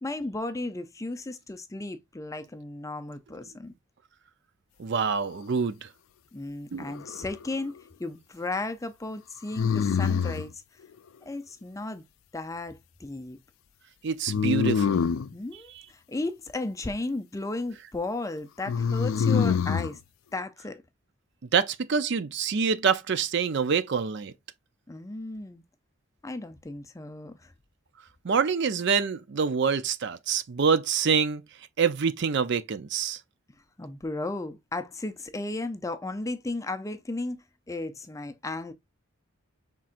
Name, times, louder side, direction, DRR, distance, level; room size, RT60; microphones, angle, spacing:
voice 1, 0.0-3.7 6.3-10.6 11.2-12.0 12.3-13.4 15.3-20.0 20.3-20.8 24.9-25.6 26.2-27.5 33.8-38.7, left 2 dB, 15° left, 0.4 m, -35 dB
voice 2, 4.8-5.9 6.7-6.9 14.0-15.1 21.5-24.3 28.2-31.4 31.8-33.2, right 6 dB, 55° right, 0.5 m, -26 dB
sound 1, 6.8-7.5 9.5-10.5 14.3-15.3 18.6-19.9, left 6 dB, 75° left, 0.4 m, -25 dB
5.8 x 3.7 x 2.5 m
head